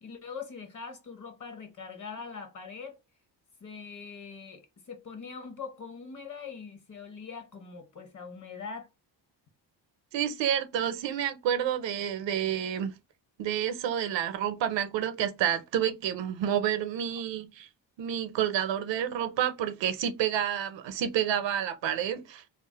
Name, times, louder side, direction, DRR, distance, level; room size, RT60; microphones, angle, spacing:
voice 1, 0.0-3.0 3.6-8.9, left 5 dB, 40° left, 0.8 m, -42 dB
voice 2, 10.1-13.0 13.4-17.7 18.0-22.4, right 10 dB, 70° right, 0.6 m, -29 dB
2.5 x 2.0 x 3.2 m
cardioid pair, 110°, 46 cm